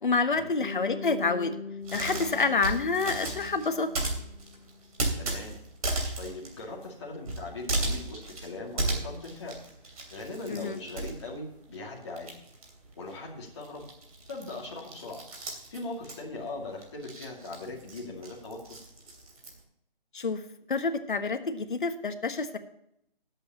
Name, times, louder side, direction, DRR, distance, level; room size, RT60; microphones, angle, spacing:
voice 1, 0.0-1.5 1.9-3.9 10.5-10.8 20.1-20.4 20.7-22.6, left 4 dB, 60° left, 8 dB, 1.4 m, -28 dB
Bass guitar, 0.6-4.9, left 5 dB, ahead, 3.8 m, -42 dB
sound 1, 1.8-11.8 12.1-19.6, right 2 dB, 40° right, 2.9 m, -35 dB
voice 2, 5.2-5.6 6.2-9.6 10.1-12.4 13.0-13.9 14.3-15.2 15.7-18.8, left 2 dB, 30° left, -4 dB, 2.4 m, -40 dB
19.5 x 8.1 x 3.0 m, 0.77 s
hypercardioid pair, 170°, 29 cm